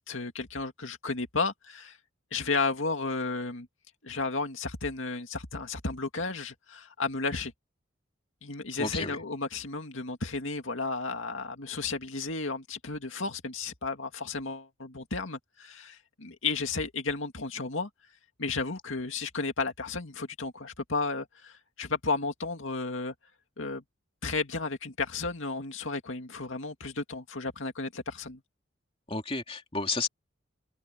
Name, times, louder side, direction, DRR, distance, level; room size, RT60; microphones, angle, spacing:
voice 1, 0.0-2.0 2.3-3.7 4.0-7.5 8.4-17.9 18.4-23.1 23.6-23.8 24.2-28.4, left 3 dB, 80° left, 2.3 m, -33 dB
voice 2, 8.8-9.2 29.1-30.1, left 3 dB, 30° left, 3.4 m, -31 dB
head